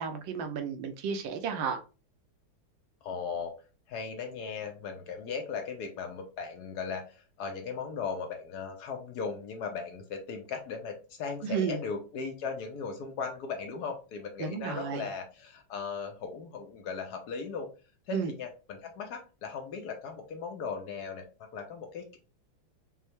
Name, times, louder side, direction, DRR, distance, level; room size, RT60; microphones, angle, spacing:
voice 1, 0.0-1.8 11.4-11.8 14.4-15.1 18.1-18.3, right 6 dB, 75° right, 1.3 m, -32 dB
voice 2, 3.0-3.5 3.9-17.7 18.1-22.2, left 5 dB, 65° left, 1.0 m, -37 dB
5.5 x 2.1 x 3.1 m
omnidirectional pair, 2.2 m